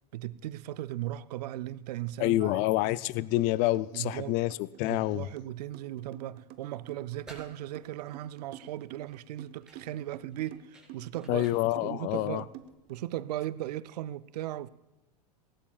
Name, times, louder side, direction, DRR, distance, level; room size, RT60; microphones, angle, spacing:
voice 1, 0.1-2.6 3.9-4.4 4.9-11.5 11.8-12.5 12.9-14.7, right 14 dB, 75° right, 0.5 m, -37 dB
voice 2, 2.2-5.3 11.3-12.4, left 16 dB, 45° left, 0.4 m, -27 dB
sound 1, 3.4-3.5 3.7-13.0, right 11 dB, 45° right, 0.9 m, -49 dB
sound 2, 7.0-13.0, right 1 dB, 5° right, 4.1 m, -57 dB
18.0 x 17.5 x 2.4 m
hypercardioid pair, 115°, 21 cm